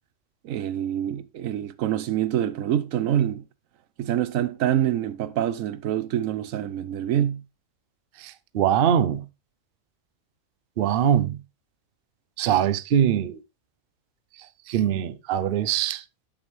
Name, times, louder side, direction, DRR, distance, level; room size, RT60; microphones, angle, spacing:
voice 1, 0.4-3.4 4.0-7.4, right 11 dB, 85° right, 1.0 m, -26 dB
voice 2, 8.2-9.2 10.8-11.4 12.4-13.4 14.7-16.0, right 9 dB, 55° right, 0.7 m, -22 dB
7.2 x 6.9 x 3.2 m
omnidirectional pair, 1.4 m